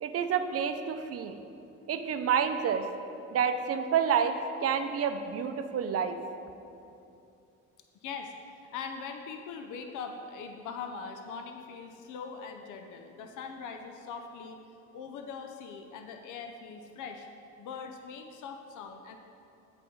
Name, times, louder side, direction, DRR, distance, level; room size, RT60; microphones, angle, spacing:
voice 1, 0.0-1.4 1.9-2.8 3.3-4.4 4.6-6.2, right 7 dB, 50° right, 8 dB, 0.6 m, -28 dB
voice 2, 8.0-8.3 8.7-14.6 14.9-17.3 17.6-19.2, left 5 dB, 80° left, 5 dB, 0.6 m, -41 dB
8.4 x 5.2 x 4.6 m, 2.7 s
cardioid pair, 90°, 30 cm